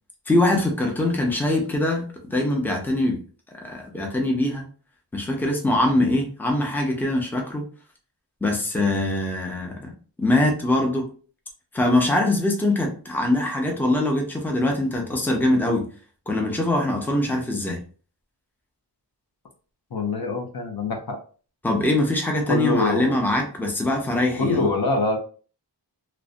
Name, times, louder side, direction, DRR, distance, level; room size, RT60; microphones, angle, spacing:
voice 1, 0.3-3.2 3.6-4.6 5.1-7.6 8.4-9.9 10.2-11.1 11.7-15.8 16.3-17.8 21.6-24.7, left 1 dB, 5° left, 1 dB, 0.5 m, -23 dB
voice 2, 19.9-21.2 22.5-23.1 24.4-25.2, left 3 dB, 55° left, 4 dB, 0.6 m, -24 dB
2.5 x 2.1 x 2.4 m, 0.39 s
wide cardioid pair, 70°, 43 cm